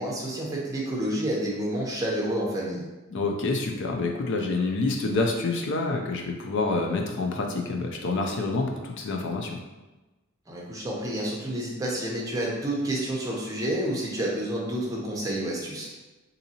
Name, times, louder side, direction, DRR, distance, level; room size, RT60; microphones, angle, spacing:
voice 1, 0.0-2.8 10.5-15.9, right 1 dB, 15° right, -4 dB, 0.7 m, -29 dB
voice 2, 3.1-9.6, left 3 dB, 55° left, 3 dB, 0.4 m, -27 dB
3.9 x 2.7 x 2.7 m, 1.1 s
head